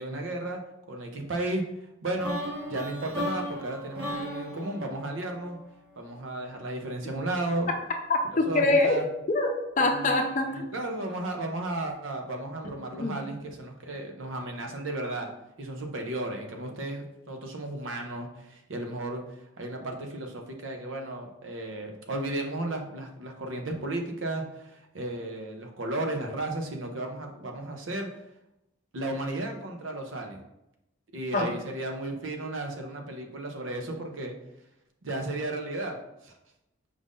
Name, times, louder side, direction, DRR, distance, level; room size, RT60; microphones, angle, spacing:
voice 1, 0.0-1.6 2.0-2.4 2.7-5.6 6.0-7.7 8.5-9.1 9.8-10.2 10.5-15.3 15.6-19.2 19.6-28.1 28.9-30.4 31.1-34.4 35.0-36.0 36.2-36.4, right 2 dB, 85° right, 3 dB, 0.7 m, -34 dB
sound 1, 2.2-6.2, left 1 dB, 55° right, 1.1 m, -36 dB
voice 2, 8.1-9.0 9.3-10.7 12.9-13.2 31.3-31.5, left 2 dB, 40° left, 4 dB, 0.5 m, -24 dB
5.0 x 2.6 x 3.6 m, 0.87 s
head